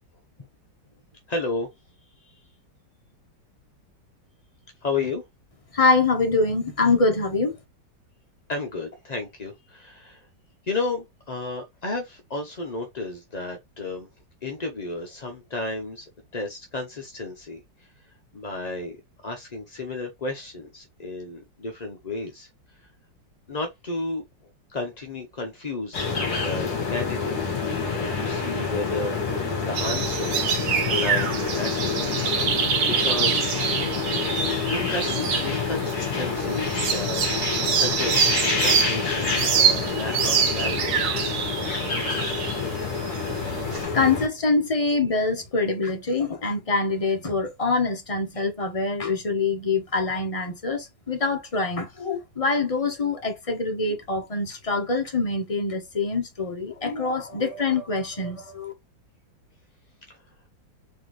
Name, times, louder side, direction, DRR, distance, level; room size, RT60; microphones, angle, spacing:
voice 1, 1.3-1.7 2.2-2.3 4.8-5.2 8.5-10.2 10.6-14.1 14.4-17.9 18.3-19.0 19.2-22.5 23.5-24.2 24.7-27.5 28.2-30.6 30.9-32.1 32.5-33.5 34.7-40.8 60.1-60.2, left 3 dB, 40° left, 0.6 m, -32 dB
voice 2, 5.7-7.6 43.9-58.7, left 3 dB, 25° left, 0.9 m, -24 dB
sound 1, 25.9-44.3, left 5 dB, 60° left, 2.2 m, -28 dB
sound 2, 29.7-43.8, right 7 dB, 80° right, 1.7 m, -26 dB
4.4 x 3.7 x 3.1 m
omnidirectional pair, 1.9 m